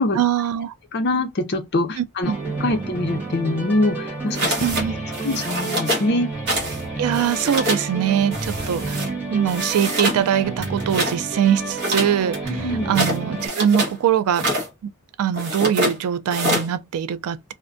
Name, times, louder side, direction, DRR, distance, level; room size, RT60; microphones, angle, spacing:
voice 1, 0.1-0.7 2.0-2.4 4.6-4.9 7.0-9.0 9.3-14.5 14.8-14.9 15.2-17.5, right 9 dB, 80° right, 0.3 m, -22 dB
voice 2, 0.9-2.3 2.6-4.5 5.2-6.3 12.5-12.9, left 2 dB, 50° left, 0.5 m, -23 dB
sound 1, 2.2-13.5, right 3 dB, 10° right, 1.1 m, -30 dB
sound 2, 4.3-4.9 5.1-6.1 6.5-6.8 7.1-7.9 8.3-9.1 9.5-10.2 10.6-11.2 11.7-14.0 14.3-14.7 15.3-16.0 16.3-16.7, equal, 50° right, 1.0 m, -25 dB
2.5 x 2.1 x 2.5 m
head